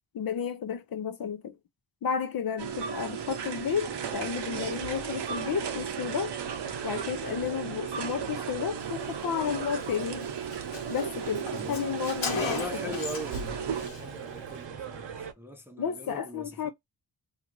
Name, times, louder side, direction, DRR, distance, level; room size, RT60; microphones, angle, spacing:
voice 1, 0.1-1.5 2.0-6.3 6.8-10.3 10.9-12.6 15.8-16.7, left 7 dB, 50° left, 0.5 m, -32 dB
sound 1, 2.6-13.9, right 7 dB, 65° right, 0.7 m, -35 dB
sound 2, 3.8-15.3, right 7 dB, 85° right, 0.9 m, -42 dB
Car, 9.8-9.9 10.2-10.3 10.5-13.5 13.7-14.0, left 4 dB, 85° left, 1.2 m, -36 dB
voice 2, 11.6-11.9 12.3-16.7, equal, 5° right, 0.4 m, -41 dB
2.8 x 2.4 x 2.9 m
wide cardioid pair, 160°, 45 cm